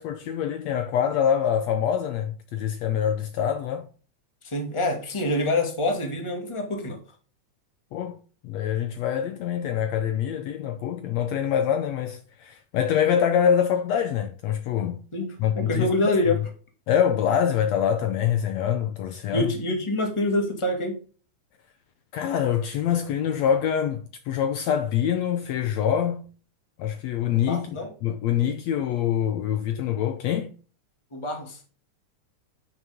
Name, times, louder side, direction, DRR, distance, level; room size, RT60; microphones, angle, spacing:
voice 1, 0.0-3.9 7.9-8.2 8.4-15.0 15.4-16.1 16.9-19.5 22.1-26.3 26.8-30.5, left 9 dB, 70° left, 1.8 m, -25 dB
voice 2, 4.4-7.0 15.1-16.4 19.3-21.0 27.5-27.9 31.1-31.6, left 1 dB, 10° left, 1.7 m, -26 dB
11.0 x 6.5 x 3.6 m
omnidirectional pair, 3.5 m